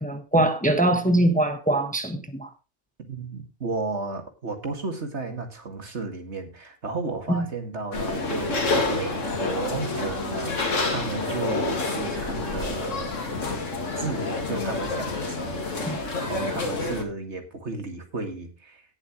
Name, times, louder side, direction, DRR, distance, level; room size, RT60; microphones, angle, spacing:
voice 1, 0.0-2.5 7.3-7.5 15.9-16.0, right 1 dB, 5° left, 1.3 m, -22 dB
voice 2, 3.1-13.1 14.0-18.8, right 3 dB, 65° right, 2.3 m, -34 dB
sound 1, 7.9-17.0, left 3 dB, 80° left, 2.4 m, -28 dB
18.0 x 7.4 x 3.0 m
omnidirectional pair, 1.3 m